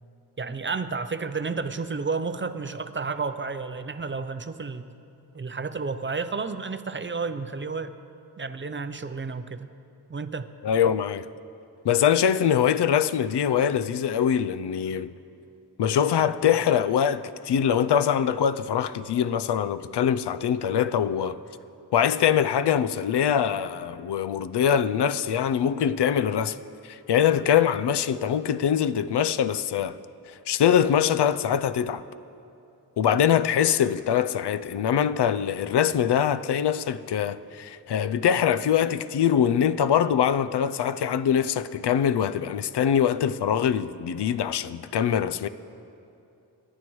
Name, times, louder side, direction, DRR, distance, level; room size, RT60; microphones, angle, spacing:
voice 1, 0.4-4.9 5.3-7.9 8.4-9.7 10.1-10.5, right 4 dB, 30° right, 0.5 m, -31 dB
voice 2, 10.6-11.3 11.8-15.1 15.8-21.4 21.9-26.6 26.8-30.0 30.5-32.0 33.0-45.5, left 8 dB, 80° left, 0.5 m, -23 dB
28.0 x 11.0 x 3.1 m
wide cardioid pair, 125°, 40 cm